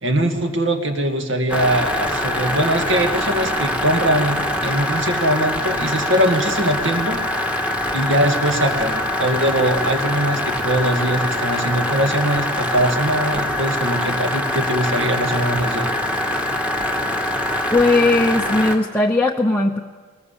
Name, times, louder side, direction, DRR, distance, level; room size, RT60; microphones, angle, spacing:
voice 1, 0.0-7.2 7.9-15.9, right 1 dB, 60° right, 4 dB, 2.2 m, -21 dB
sound 1, 1.5-18.8, left 1 dB, 5° right, 1.5 m, -23 dB
voice 2, 17.7-19.8, left 2 dB, 10° left, -1 dB, 0.7 m, -17 dB
21.5 x 19.5 x 7.4 m, 1.5 s
head